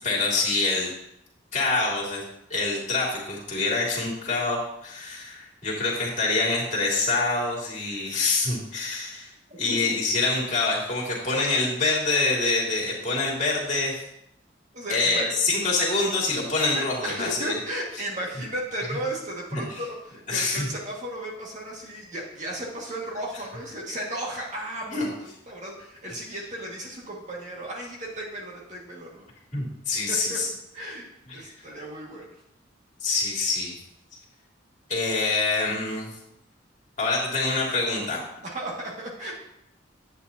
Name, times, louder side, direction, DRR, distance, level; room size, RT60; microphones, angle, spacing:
voice 1, 0.0-0.9 1.5-2.2 2.5-9.3 9.6-14.0 14.9-17.5 18.9-19.0 19.5-19.6 20.3-20.7 24.9-25.1 29.5-30.5 31.3-31.4 33.0-33.7 34.9-36.1 37.0-38.2, left 3 dB, 40° left, -3 dB, 2.6 m, -25 dB
voice 2, 14.7-15.4 16.7-25.1 25.5-29.3 30.1-30.4 30.7-32.3 38.4-39.3, right 1 dB, 40° right, -3 dB, 2.0 m, -34 dB
10.0 x 8.5 x 2.9 m, 0.78 s
head